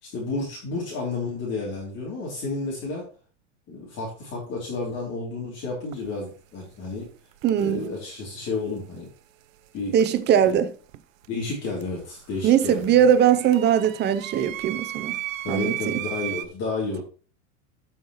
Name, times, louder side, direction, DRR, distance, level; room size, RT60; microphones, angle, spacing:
voice 1, 0.0-3.1 3.7-7.1 7.6-9.1 9.7-10.0 10.4-10.6 11.3-13.1 15.4-17.0, left 3 dB, 40° left, 3.1 m, -31 dB
sound 1, 5.9-6.1 7.3-7.9 10.0-11.0 11.2-16.5, right 14 dB, 85° right, 0.7 m, -36 dB
voice 2, 7.4-7.9 9.9-10.7 12.4-15.2 15.5-15.9, right 9 dB, 25° right, 0.7 m, -20 dB
13.0 x 5.7 x 3.1 m
supercardioid pair, 125°, 38 cm